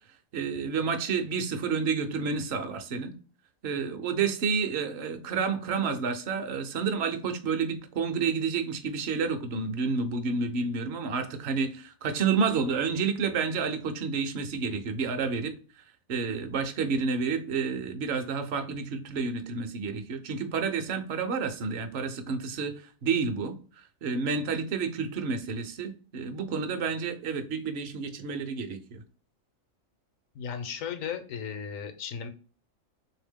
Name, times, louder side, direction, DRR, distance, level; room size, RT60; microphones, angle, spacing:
voice 1, 0.3-3.1 3.6-15.5 16.1-23.5 24.0-29.0, right 5 dB, 60° right, 0.8 m, -30 dB
voice 2, 30.3-32.3, left 7 dB, 85° left, 1.1 m, -35 dB
3.4 x 2.8 x 3.5 m
omnidirectional pair, 1.4 m